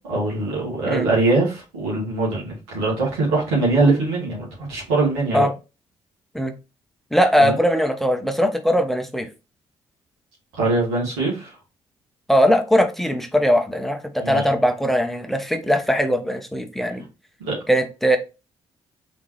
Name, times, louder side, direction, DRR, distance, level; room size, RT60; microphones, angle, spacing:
voice 1, 0.1-5.5 7.4-7.6 10.5-11.5 14.2-14.4 17.4-17.5, right 3 dB, 85° right, 1.9 m, -22 dB
voice 2, 7.1-9.3 12.3-17.0 17.7-18.2, equal, ahead, 1.0 m, -20 dB
3.9 x 3.6 x 3.1 m
hypercardioid pair, 45°, 13 cm